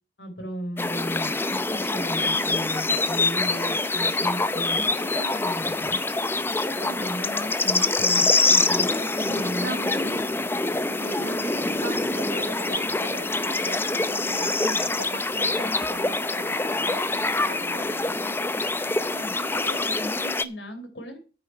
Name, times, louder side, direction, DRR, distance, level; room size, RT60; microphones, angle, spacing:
voice 1, 0.2-6.0 6.4-10.0 15.4-15.8 19.0-21.2, equal, 70° left, 7 dB, 3.7 m, -36 dB
sound 1, 0.8-20.4, left 3 dB, 15° left, 0.6 m, -25 dB
voice 2, 6.8-7.5 9.2-10.4 10.8-18.4, right 3 dB, 75° right, 13 dB, 1.2 m, -39 dB
9.0 x 8.7 x 5.6 m, 0.35 s
head